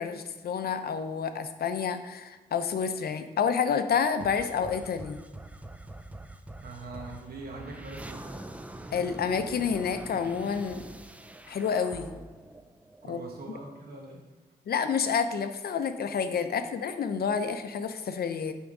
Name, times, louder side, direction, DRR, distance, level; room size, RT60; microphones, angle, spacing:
voice 1, 0.0-5.2 8.9-10.8 11.5-12.2 13.1-13.2 14.7-18.5, left 6 dB, 75° left, 9 dB, 0.6 m, -29 dB
sound 1, 4.2-13.5, right 1 dB, 10° right, 0.4 m, -45 dB
voice 2, 6.6-8.5 13.0-14.2, right 3 dB, 75° right, -1 dB, 1.2 m, -42 dB
8.4 x 3.5 x 5.3 m, 1.2 s
wide cardioid pair, 125°, 16 cm